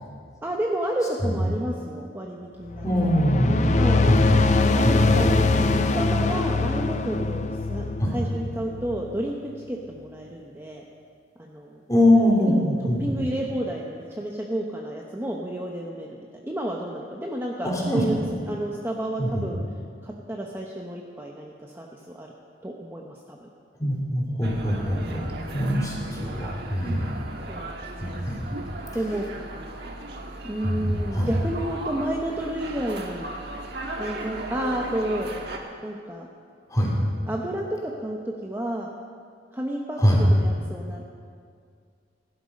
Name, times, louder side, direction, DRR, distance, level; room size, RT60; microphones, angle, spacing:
voice 1, 0.4-2.8 3.7-4.1 4.7-5.4 5.9-7.4 7.7-7.9 8.1-10.8 11.4-11.8 12.4-12.6 13.0-18.2 18.5-19.6 20.0-22.3 22.6-23.5 27.5-28.2 28.9-29.3 30.4-33.3 34.0-35.3 35.8-36.3 37.3-38.9 39.5-41.0, right 1 dB, 10° right, -1 dB, 0.8 m, -31 dB
sound 1, 2.7-9.3, left 3 dB, 40° left, 0.6 m, -23 dB
voice 2, 2.8-3.6 4.0-4.3 4.8-5.8 8.0-8.1 11.9-13.2 17.6-18.0 19.2-19.4 23.8-27.2 28.0-28.4 30.6-31.3 36.7-36.9 40.0-40.2, equal, 20° left, -3 dB, 3.3 m, -23 dB
sound 2, 24.4-35.6, right 1 dB, 60° right, 1.5 m, -37 dB
17.0 x 11.5 x 5.3 m, 2.2 s
head